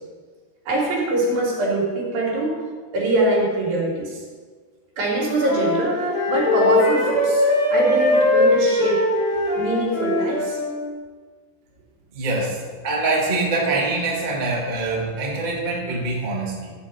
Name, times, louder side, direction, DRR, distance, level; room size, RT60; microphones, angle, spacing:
voice 1, 0.7-2.6 2.9-4.2 5.0-6.0 6.3-9.1 9.6-10.6, right 2 dB, 80° right, -3 dB, 4.1 m, -23 dB
Wind instrument woodwind instrument, 5.2-10.7, left 2 dB, 60° left, 3.6 m, -20 dB
voice 2, 12.1-16.7, right 2 dB, 45° right, -3 dB, 0.5 m, -24 dB
12.0 x 4.3 x 7.8 m, 1.5 s
omnidirectional pair, 4.1 m